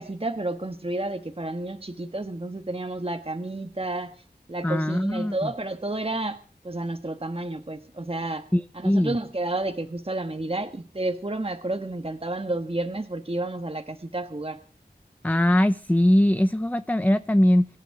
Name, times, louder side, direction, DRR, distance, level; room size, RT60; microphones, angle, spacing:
voice 1, 0.0-4.1 4.5-6.4 6.6-8.5 8.7-14.6, right 2 dB, 35° right, 5 dB, 1.4 m, -31 dB
voice 2, 4.6-5.5 8.5-9.2 15.2-17.7, left 1 dB, 10° left, 12 dB, 0.7 m, -21 dB
24.5 x 11.5 x 4.8 m, 0.38 s
wide cardioid pair, 50°, 17 cm